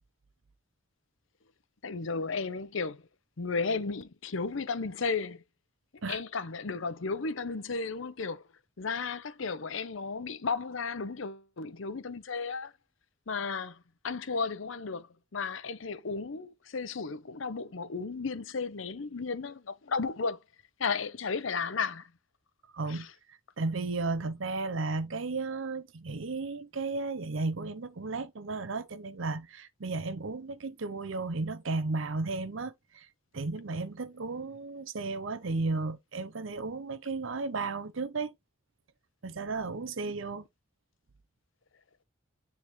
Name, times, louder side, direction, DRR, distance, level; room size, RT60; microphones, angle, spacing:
voice 1, 1.8-3.0 3.4-5.4 6.1-8.4 8.8-12.7 13.3-13.8 14.0-20.4 20.8-22.1 22.9-23.1, left 4 dB, 70° left, 0.7 m, -34 dB
voice 2, 22.7-23.1 23.6-33.1 33.3-38.3 39.2-40.4, right 3 dB, 65° right, 0.7 m, -34 dB
9.8 x 3.7 x 3.1 m
head